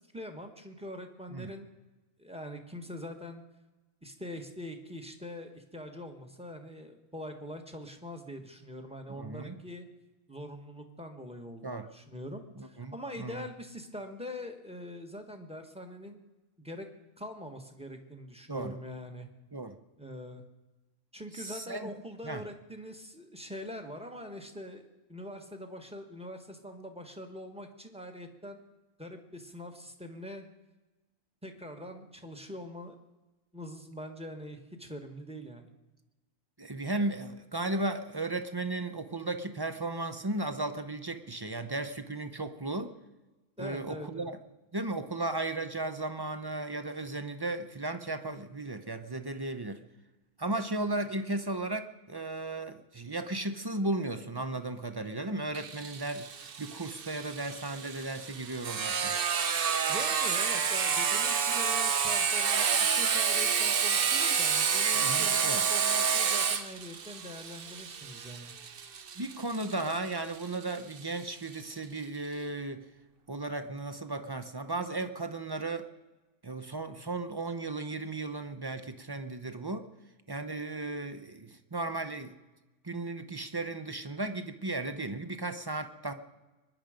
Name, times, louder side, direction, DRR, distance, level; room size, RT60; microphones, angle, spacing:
voice 1, 0.1-1.7 2.2-3.4 4.0-9.9 10.3-16.2 16.6-16.9 17.2-19.3 20.0-20.4 21.1-28.6 29.0-30.4 31.4-33.0 33.5-35.7 43.6-44.3 59.9-68.5, equal, 5° right, 5 dB, 1.3 m, -43 dB
voice 2, 9.1-9.6 11.6-11.9 12.6-13.4 18.5-18.7 19.5-19.8 21.3-21.9 22.2-22.4 36.6-42.9 43.6-44.4 44.7-49.8 50.4-59.2 64.9-65.7 69.2-72.9 73.3-75.9 76.4-79.9 80.3-82.4 82.8-86.1, right 2 dB, 25° right, 9 dB, 0.5 m, -35 dB
Sawing, 55.5-71.0, right 6 dB, 50° right, 0.9 m, -29 dB
23.5 x 10.5 x 5.1 m, 1.1 s
omnidirectional pair, 1.4 m